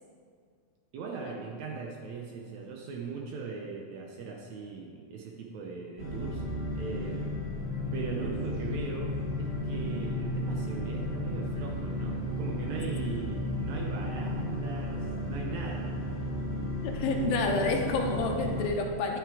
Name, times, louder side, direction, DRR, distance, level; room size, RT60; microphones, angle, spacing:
voice 1, 0.9-6.4 6.7-7.4 7.9-16.0, right 4 dB, 80° right, 1 dB, 1.6 m, -39 dB
sound 1, 6.0-18.7, left 1 dB, 35° left, 1.1 m, -33 dB
voice 2, 16.8-19.2, left 3 dB, 75° left, 2 dB, 2.8 m, -29 dB
11.0 x 8.3 x 4.8 m, 2.1 s
omnidirectional pair, 4.3 m